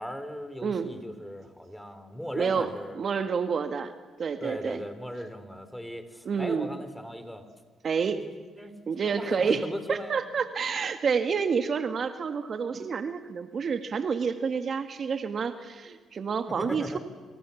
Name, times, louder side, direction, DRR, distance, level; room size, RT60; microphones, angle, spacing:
voice 1, 0.0-3.0 4.4-7.4 8.2-8.7 9.0-10.2 16.6-17.0, equal, ahead, 10 dB, 3.8 m, -38 dB
voice 2, 0.6-0.9 2.3-3.9 4.2-4.8 6.2-6.8 7.8-8.2 8.9-17.0, right 6 dB, 50° right, 8 dB, 1.7 m, -29 dB
28.5 x 26.5 x 7.2 m, 1.5 s
supercardioid pair, 70°, 0 cm